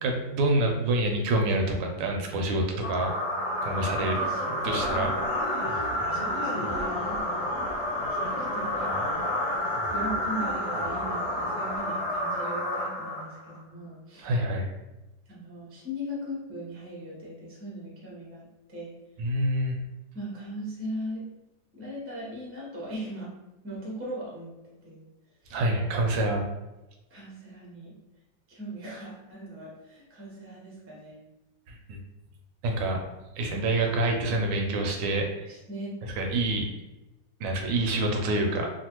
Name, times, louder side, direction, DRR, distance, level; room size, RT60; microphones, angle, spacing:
voice 1, 0.0-3.1 3.6-4.1 4.6-5.1 14.2-14.7 19.2-19.8 25.5-26.5 31.7-32.0 32.6-33.0 33.4-35.5 36.2-36.7 37.4-38.7, right 1 dB, 80° right, 2 dB, 1.3 m, -27 dB
sound 1, 2.8-13.6, left 1 dB, 75° left, 0.6 m, -29 dB
voice 2, 4.0-5.2 5.7-7.5 8.1-9.0 9.9-14.3 15.3-18.9 20.1-21.3 21.7-23.3 23.6-25.0 25.4-25.6 27.1-27.9 28.5-31.2 33.8-33.9 35.5-35.9, equal, 20° right, -6 dB, 0.3 m, -39 dB
3.2 x 2.3 x 2.9 m, 1.0 s
omnidirectional pair, 2.1 m